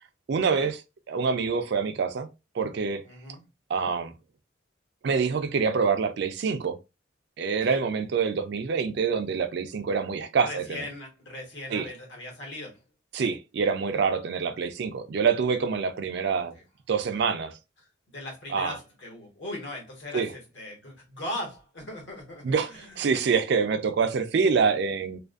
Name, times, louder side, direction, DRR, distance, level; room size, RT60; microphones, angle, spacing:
voice 1, 0.3-0.8 1.1-2.3 2.5-3.0 3.7-4.1 5.0-6.8 7.4-10.9 11.7-11.9 13.1-16.5 16.9-17.5 18.5-18.8 20.1-20.3 22.4-25.2, right 5 dB, 55° right, 0.3 m, -26 dB
voice 2, 3.0-3.4 7.6-7.8 10.4-12.8 16.5-16.6 18.1-23.2, left 1 dB, 65° left, 1.1 m, -39 dB
2.5 x 2.4 x 2.4 m
head